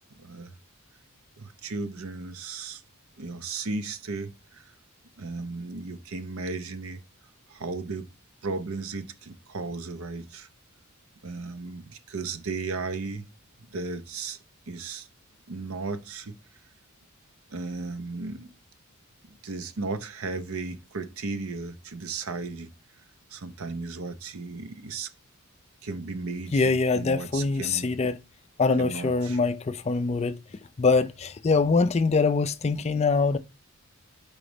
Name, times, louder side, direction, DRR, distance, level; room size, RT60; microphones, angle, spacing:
voice 1, 0.1-0.5 1.4-2.8 3.2-4.7 5.2-7.0 7.5-8.1 8.4-10.5 11.2-13.2 13.7-14.4 14.7-15.1 15.5-16.3 17.5-18.5 19.3-22.7 23.3-25.1 25.8-28.0 28.8-29.4, right 3 dB, 75° right, 0.7 m, -35 dB
voice 2, 26.5-28.2 28.6-30.4 30.8-33.4, left 4 dB, 30° left, 0.3 m, -23 dB
4.9 x 4.0 x 5.0 m
head